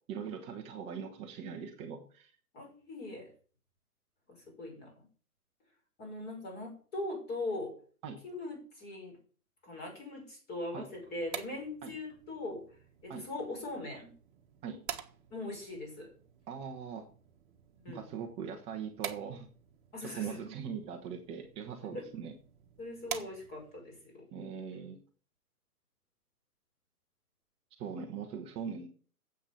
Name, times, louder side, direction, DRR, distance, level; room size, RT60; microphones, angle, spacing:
voice 1, 0.1-2.3 8.0-8.2 10.7-10.8 11.8-11.9 13.1-13.3 14.6-14.8 16.5-17.1 17.9-19.5 20.0-22.3 24.3-25.0 27.8-28.9, right 7 dB, 15° right, 3 dB, 0.9 m, -41 dB
voice 2, 2.5-3.3 4.3-4.9 6.0-7.7 8.2-9.2 9.6-12.6 13.0-14.1 15.3-16.1 17.8-18.0 19.9-20.4 21.9-22.0 22.8-24.3, left 2 dB, 20° left, 1 dB, 5.9 m, -40 dB
sound 1, 10.9-23.8, right 10 dB, 30° right, 1.5 m, -48 dB
10.0 x 7.8 x 7.1 m, 0.42 s
figure-of-eight pair, 125°, 45 cm